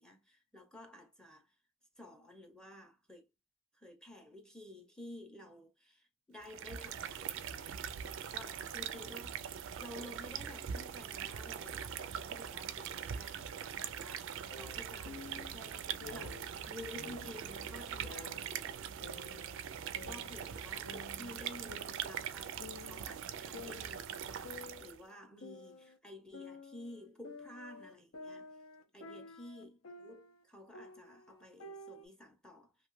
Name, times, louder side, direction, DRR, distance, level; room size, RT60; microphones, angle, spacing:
voice 1, 0.0-1.6 2.0-3.3 3.7-7.8 8.3-9.4 9.8-19.4 20.0-28.5 28.9-32.9, left 1 dB, 5° left, 0.5 m, -52 dB
sound 1, 6.4-25.0, right 8 dB, 65° right, 0.4 m, -42 dB
sound 2, 14.5-15.5 16.0-16.5 17.0-18.6 19.0-20.6 20.8-22.3 22.6-23.1 23.5-26.0 26.3-30.4 30.7-32.1, left 3 dB, 90° left, 0.7 m, -51 dB
2.8 x 2.2 x 3.1 m
head